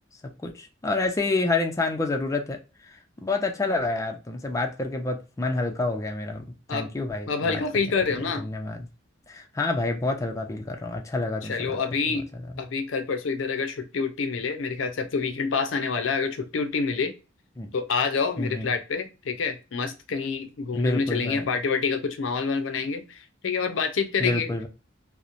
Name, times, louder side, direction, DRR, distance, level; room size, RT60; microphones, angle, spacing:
voice 1, 0.4-2.6 2.8-7.6 8.4-8.9 9.3-11.8 12.3-12.6 17.6-17.7 18.4-18.7 20.7-21.5 24.2-24.7, left 2 dB, 15° left, 0.4 m, -28 dB
voice 2, 7.3-8.5 11.4-12.3 12.6-17.1 17.7-24.5, left 5 dB, 80° left, 0.5 m, -27 dB
2.8 x 2.0 x 2.4 m
head